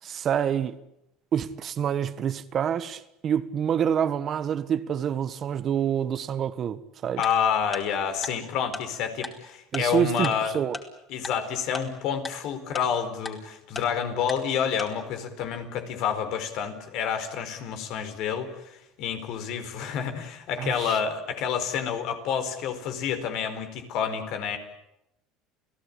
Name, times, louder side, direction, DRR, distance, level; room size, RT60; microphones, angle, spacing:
voice 1, 0.0-0.8 1.3-7.2 9.7-10.8 20.6-21.0, right 8 dB, 40° right, 1.4 m, -27 dB
voice 2, 7.2-10.6 11.1-24.6, left 7 dB, 60° left, 4.5 m, -29 dB
Tick-tock, 7.2-7.3 7.7-7.8 8.2-8.3 8.7-8.8 9.2-9.3 9.7-9.8 10.2-10.3 10.7-10.8 11.2-11.3 11.7-11.8 12.2-12.3 12.7-12.8 13.2-13.3 13.7-13.8 14.3-14.4 14.8-14.9, left 3 dB, 20° left, 4.4 m, -34 dB
29.0 x 17.5 x 9.9 m
supercardioid pair, 120°, 0 cm